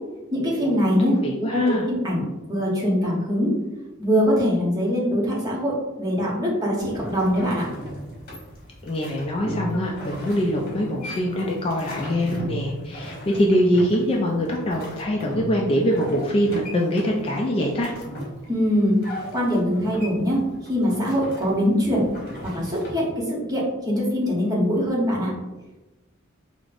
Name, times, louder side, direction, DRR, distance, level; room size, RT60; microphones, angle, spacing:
voice 1, 0.3-1.2 1.5-2.2 2.5-3.5 4.0-7.6 18.5-18.9 19.3-20.4 20.7-22.1 22.4-25.3, equal, 20° right, -4 dB, 0.9 m, -23 dB
voice 2, 1.2-1.9 8.8-17.9, equal, 25° left, -1 dB, 0.3 m, -23 dB
sound 1, 6.8-23.1, equal, 50° left, 1.2 m, -37 dB
5.0 x 2.0 x 2.4 m, 1.1 s
head